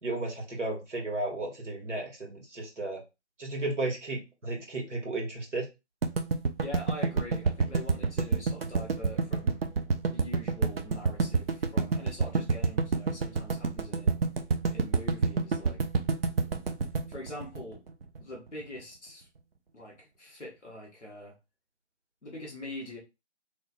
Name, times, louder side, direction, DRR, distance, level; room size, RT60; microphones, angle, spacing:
voice 1, 0.0-3.0 3.4-5.7, right 2 dB, 80° right, 0 dB, 1.8 m, -34 dB
sound 1, 6.0-18.2, right 4 dB, 55° right, 0.6 m, -28 dB
voice 2, 6.6-9.6 10.1-14.2 14.7-15.8 17.1-17.8 18.2-19.3 19.7-21.4 22.2-23.0, left 1 dB, ahead, -19 dB, 0.6 m, -43 dB
3.1 x 2.2 x 4.1 m, 0.26 s
figure-of-eight pair, 160°, 35 cm